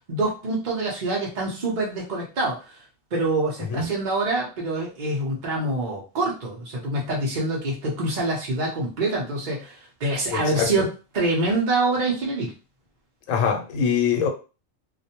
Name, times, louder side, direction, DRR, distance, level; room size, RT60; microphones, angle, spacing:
voice 1, 0.1-2.8 3.1-10.9 11.1-12.5, right 2 dB, 45° right, 0.8 m, -25 dB
voice 2, 10.3-10.9 13.3-14.3, left 6 dB, 90° left, 1.0 m, -23 dB
2.5 x 2.1 x 2.8 m
omnidirectional pair, 1.3 m